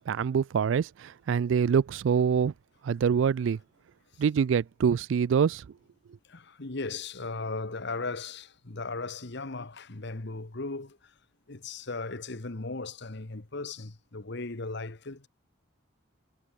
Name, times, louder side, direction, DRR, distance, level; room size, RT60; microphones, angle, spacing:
voice 1, 0.0-2.5 2.8-3.6 4.2-5.7, right 7 dB, 70° right, 0.3 m, -25 dB
voice 2, 6.3-11.1 11.5-15.3, left 3 dB, 60° left, 1.4 m, -37 dB
head